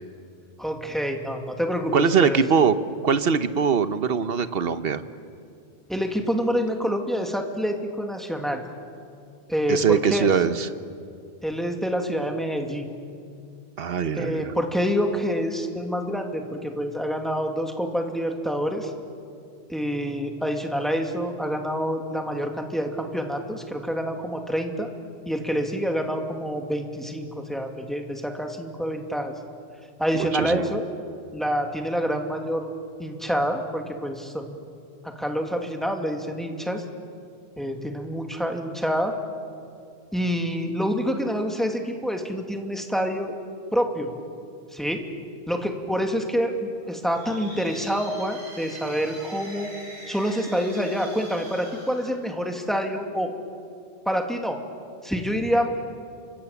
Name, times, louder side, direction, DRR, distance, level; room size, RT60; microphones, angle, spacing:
voice 1, 0.6-2.4 5.9-8.6 9.5-10.3 11.4-12.9 14.2-18.9 19.7-24.9 25.3-29.3 30.0-30.8 31.3-32.7 33.0-34.5 35.0-36.8 37.6-39.1 40.1-43.3 43.7-44.1 44.7-45.0 45.5-49.7 50.1-53.3 54.1-54.6 55.0-55.7, equal, ahead, 3 dB, 2.2 m, -27 dB
voice 2, 1.9-2.7 3.0-5.0 9.7-10.7 13.8-14.5 30.1-30.7, right 6 dB, 60° right, 11 dB, 1.2 m, -22 dB
sound 1, 46.9-52.9, right 1 dB, 80° right, 7.2 m, -43 dB
29.0 x 25.0 x 7.1 m, 2.4 s
omnidirectional pair, 1.1 m